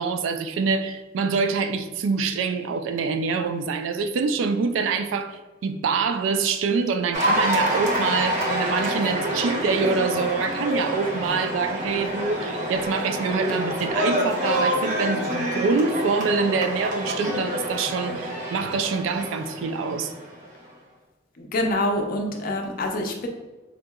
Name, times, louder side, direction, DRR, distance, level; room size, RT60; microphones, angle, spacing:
voice 1, 0.0-20.1, right 5 dB, 85° right, 0.3 m, -25 dB
Cheering / Applause, 7.1-20.5, equal, 40° right, 0.6 m, -27 dB
voice 2, 21.4-23.3, left 1 dB, 50° left, 0.5 m, -26 dB
3.9 x 2.7 x 2.3 m
head